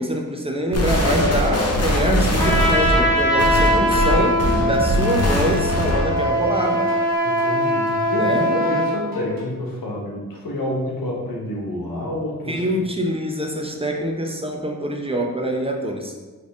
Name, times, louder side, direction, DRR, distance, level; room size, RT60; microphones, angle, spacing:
voice 1, 0.0-6.9 8.2-8.5 12.5-16.1, equal, 15° right, 1 dB, 0.6 m, -24 dB
sound 1, 0.7-6.2, left 1 dB, 45° left, 1.0 m, -21 dB
Trumpet, 2.3-9.0, equal, 10° left, 1.5 m, -21 dB
sound 2, 3.1-3.5 3.9-9.5, left 2 dB, 80° right, 1.2 m, -38 dB
voice 2, 7.2-12.8, left 1 dB, 85° left, -3 dB, 1.2 m, -28 dB
4.1 x 3.3 x 3.6 m, 1.3 s
cardioid pair, 65°, 34 cm